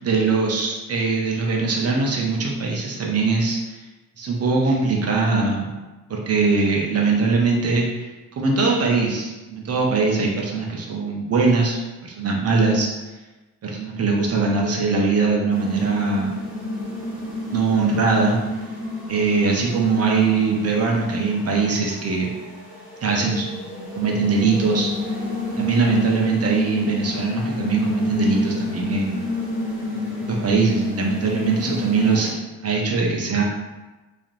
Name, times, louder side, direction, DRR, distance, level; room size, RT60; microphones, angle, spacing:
voice 1, 0.0-3.6 4.2-5.7 6.1-8.1 8.4-12.9 13.6-16.3 17.5-18.4 19.1-22.3 23.0-23.5 24.0-24.9 25.6-29.2 29.9-32.3 32.6-33.4, right 4 dB, 30° right, -1 dB, 0.7 m, -21 dB
sound 1, 15.5-32.3, left 2 dB, 5° right, 1.4 m, -30 dB
3.2 x 2.4 x 2.5 m, 1.1 s
figure-of-eight pair, 45°, 47 cm